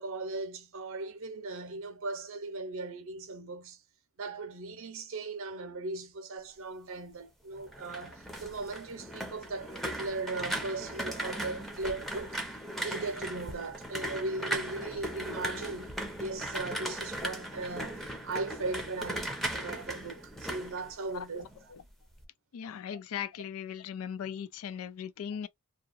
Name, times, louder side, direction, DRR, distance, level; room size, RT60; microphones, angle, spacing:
voice 1, 0.0-3.8 4.2-12.4 12.8-21.6 22.9-23.0, right 3 dB, 65° right, 0.7 m, -38 dB
sound 1, 7.6-21.6 21.9-22.3, right 1 dB, ahead, 0.6 m, -38 dB
voice 2, 22.5-25.5, left 8 dB, 70° left, 0.3 m, -38 dB
2.9 x 2.3 x 2.4 m
head